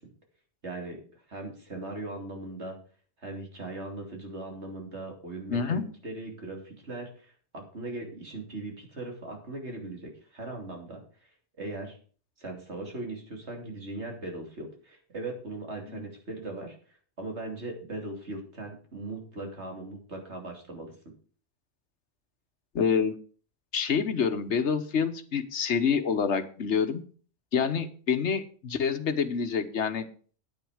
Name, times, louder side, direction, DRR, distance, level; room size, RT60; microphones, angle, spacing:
voice 1, 0.6-1.0 1.3-2.8 3.2-11.0 11.6-12.0 12.4-16.7 17.2-20.9, right 2 dB, 70° right, 2 dB, 3.2 m, -39 dB
voice 2, 5.5-5.9 15.9-16.0 22.7-23.1 23.7-27.0 27.5-30.1, left 6 dB, 75° left, 10 dB, 1.4 m, -27 dB
9.6 x 9.4 x 5.1 m, 0.41 s
omnidirectional pair, 1.2 m